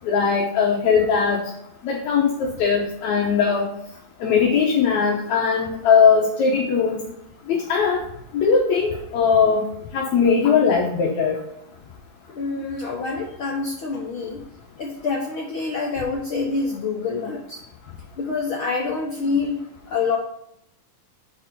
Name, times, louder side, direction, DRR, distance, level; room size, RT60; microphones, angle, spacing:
voice 1, 0.0-1.5 1.8-3.7 4.2-7.0 7.5-8.0 8.3-11.4, left 6 dB, 65° left, -2 dB, 2.1 m, -19 dB
voice 2, 12.3-14.4 14.8-17.6 18.2-19.6 19.9-20.2, left 4 dB, 80° left, -2 dB, 1.1 m, -26 dB
6.4 x 4.7 x 5.3 m, 0.80 s
omnidirectional pair, 4.0 m